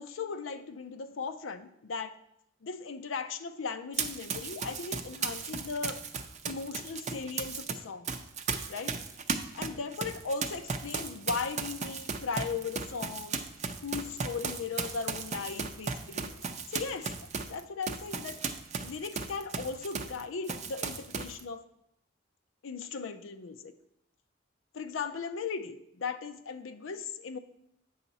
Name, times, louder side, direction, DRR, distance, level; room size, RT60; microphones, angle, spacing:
voice 1, 0.0-2.1 2.6-6.0 6.4-8.1 8.7-9.0 9.6-13.4 13.8-16.3 16.7-18.4 18.8-21.6 22.6-23.7 24.7-27.4, left 5 dB, 90° left, 9 dB, 0.6 m, -37 dB
Run, 3.9-7.7 8.1-20.2 20.5-21.4, right 5 dB, 35° right, 0.5 m, -36 dB
8.5 x 5.7 x 4.0 m, 0.77 s
head